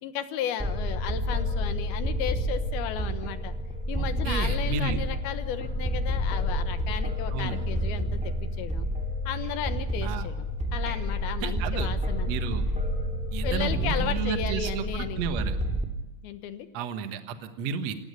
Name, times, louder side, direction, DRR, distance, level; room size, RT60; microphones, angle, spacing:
voice 1, 0.0-3.5 3.9-8.9 9.3-10.4 10.7-12.3 13.4-15.2 16.2-16.7, left 10 dB, 75° left, 10 dB, 3.0 m, -34 dB
sound 1, 0.6-15.8, equal, 5° right, 1.2 m, -29 dB
voice 2, 4.0-5.0 7.3-7.6 10.0-10.3 11.4-11.9 12.3-12.7 13.3-15.6 16.7-17.9, right 7 dB, 55° right, 8 dB, 2.0 m, -32 dB
27.0 x 17.5 x 8.2 m, 0.97 s
omnidirectional pair, 4.7 m